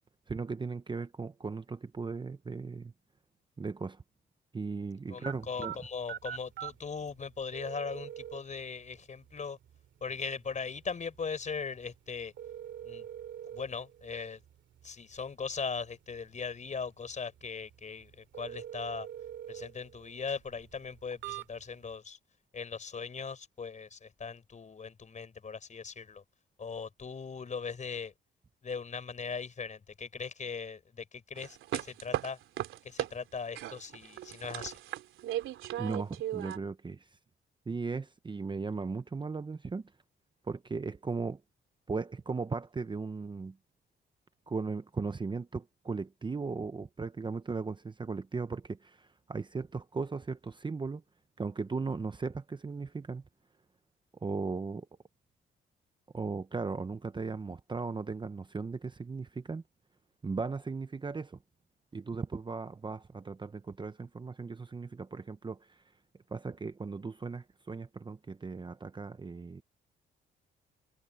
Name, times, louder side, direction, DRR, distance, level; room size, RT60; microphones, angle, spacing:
voice 1, 0.3-2.9 3.6-4.0 4.5-5.7 35.8-37.1 37.7-39.9 40.5-41.4 41.9-43.6 44.5-51.0 51.4-53.2 54.2-54.9 56.1-59.6 60.2-61.4 61.9-65.8 66.3-69.6, right 4 dB, 25° right, 0.9 m, -37 dB
voice 2, 5.1-9.6 10.0-12.3 12.8-13.0 13.5-14.4 14.8-19.1 19.5-22.2 22.5-26.2 26.6-28.1 28.6-32.4 32.8-34.7, left 5 dB, 35° left, 4.8 m, -39 dB
sound 1, 5.2-21.9, right 10 dB, 70° right, 2.5 m, -47 dB
sound 2, 31.4-33.1 33.6-36.6, right 12 dB, 85° right, 3.1 m, -37 dB
cardioid pair, 90°, 20 cm